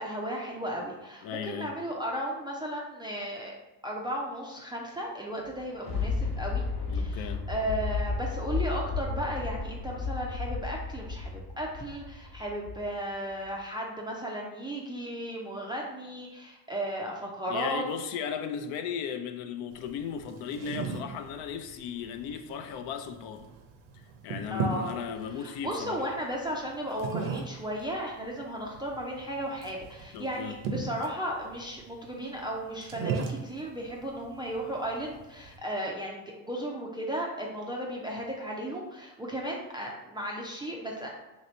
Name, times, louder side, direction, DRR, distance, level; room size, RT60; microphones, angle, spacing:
voice 1, 0.0-3.5 3.8-6.6 6.9-17.8 24.5-24.9 25.4-41.1, equal, 10° right, 0.3 m, -35 dB
voice 2, 1.2-1.7 6.9-7.4 17.5-23.5 24.2-26.1 30.1-30.6, left 7 dB, 70° left, 0.6 m, -36 dB
Thunder, 5.4-13.0 13.5-13.6, left 4 dB, 50° left, 1.1 m, -33 dB
sound 1, 19.7-35.6, right 4 dB, 70° right, 0.7 m, -39 dB
2.9 x 2.8 x 4.2 m
supercardioid pair, 95°, 49 cm